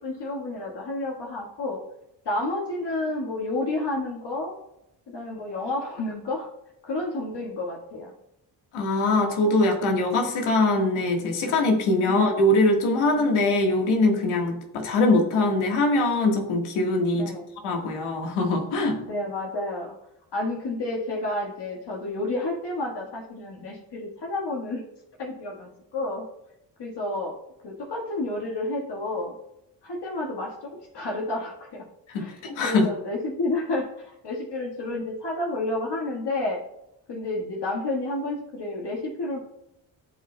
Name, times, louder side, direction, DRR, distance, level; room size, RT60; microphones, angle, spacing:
voice 1, 0.0-1.8 2.2-4.6 5.1-6.5 6.8-8.1 13.2-13.4 17.1-17.5 19.1-19.9 20.3-24.8 25.2-26.2 26.8-27.3 27.6-29.3 29.8-31.8 32.2-36.6 37.1-39.4, left 2 dB, 55° left, -1 dB, 1.6 m, -30 dB
voice 2, 8.7-17.3 17.6-19.0 32.1-32.8, left 2 dB, 80° left, 2 dB, 1.6 m, -22 dB
14.5 x 5.5 x 2.2 m, 0.83 s
supercardioid pair, 50°, 49 cm